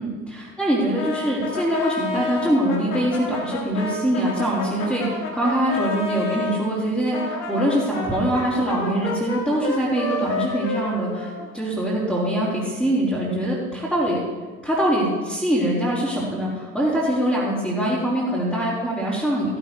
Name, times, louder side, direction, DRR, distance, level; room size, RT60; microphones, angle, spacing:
voice 1, 0.0-14.2 14.6-19.6, right 1 dB, ahead, -10 dB, 4.7 m, -23 dB
Brass instrument, 0.9-6.6 7.1-11.9, left 3 dB, 45° left, 4.5 m, -30 dB
16.5 x 12.0 x 3.4 m, 1.3 s
figure-of-eight pair, 65°, 44 cm